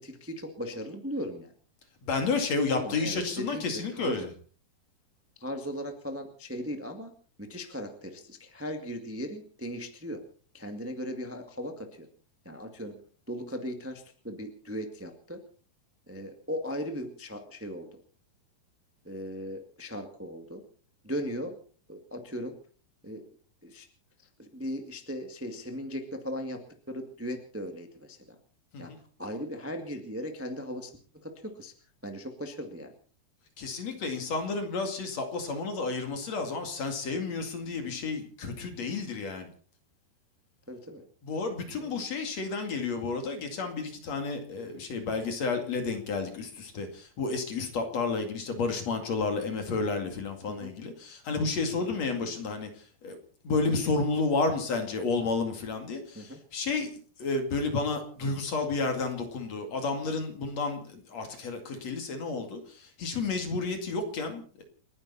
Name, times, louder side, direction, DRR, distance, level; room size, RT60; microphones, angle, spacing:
voice 1, 0.0-1.5 2.7-4.2 5.4-7.1 7.4-10.2 10.5-12.1 12.4-12.9 13.3-15.4 16.1-17.9 19.0-20.6 21.0-21.6 21.9-22.5 23.0-23.3 23.6-23.9 24.4-26.6 26.9-28.2 28.8-28.9 29.2-30.9 31.2-31.7 32.0-32.9 40.7-41.0 41.7-42.0 50.5-50.7 52.2-52.3 56.1-56.4, equal, 10° right, 4 dB, 0.6 m, -38 dB
voice 2, 2.0-4.3 28.7-29.0 33.6-39.5 41.2-53.2 53.4-56.9 57.2-64.6, left 4 dB, 45° left, 5 dB, 3.1 m, -31 dB
29.5 x 10.5 x 4.2 m, 0.43 s
omnidirectional pair, 4.5 m